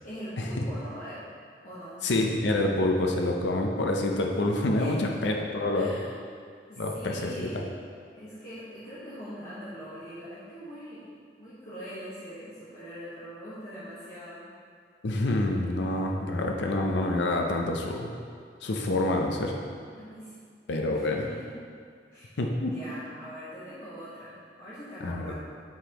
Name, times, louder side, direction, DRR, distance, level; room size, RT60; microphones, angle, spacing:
voice 1, 0.0-1.2 1.6-2.0 4.7-5.1 5.7-6.2 6.7-7.6 8.2-11.0 11.4-14.5 19.9-20.4 20.9-21.6 22.1-25.3, equal, 50° left, -11 dB, 1.2 m, -42 dB
voice 2, 2.0-5.9 6.8-7.6 15.0-18.1 18.6-19.5 20.7-21.3 22.4-22.7 25.0-25.3, left 2 dB, 85° left, 1 dB, 0.6 m, -27 dB
7.8 x 5.0 x 2.9 m, 2.1 s
head